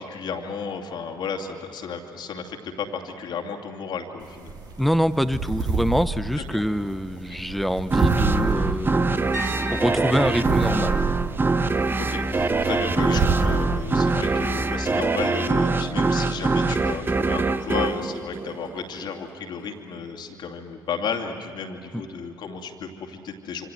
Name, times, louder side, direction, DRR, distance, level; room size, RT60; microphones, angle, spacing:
voice 1, 0.0-4.5 6.5-6.6 12.0-23.7, left 6 dB, 50° left, 2 dB, 2.5 m, -33 dB
sound 1, 4.2-14.8, right 3 dB, 45° right, 3.4 m, -29 dB
voice 2, 4.8-11.0 21.9-22.0, equal, ahead, 14 dB, 0.9 m, -25 dB
sound 2, 7.9-19.1, right 3 dB, 20° right, 1.0 m, -23 dB
sound 3, 9.3-13.1 13.4-13.8 16.6-16.7, right 1 dB, 85° right, 4.1 m, -39 dB
27.0 x 26.5 x 7.9 m, 2.7 s
figure-of-eight pair, 50°, 10 cm